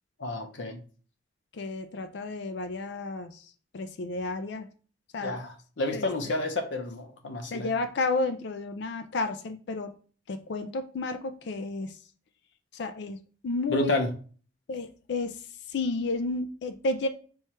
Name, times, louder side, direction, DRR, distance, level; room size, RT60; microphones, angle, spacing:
voice 1, 0.2-0.8 5.2-7.7 13.7-14.1, left 2 dB, 80° left, 5 dB, 0.8 m, -30 dB
voice 2, 1.5-3.5 3.7-4.7 5.1-5.4 5.9-6.1 7.5-9.9 10.3-12.0 12.7-13.2 13.4-14.0 14.7-15.4 15.7-17.1, left 3 dB, 65° left, 8 dB, 0.4 m, -31 dB
4.5 x 2.4 x 4.3 m, 0.39 s
head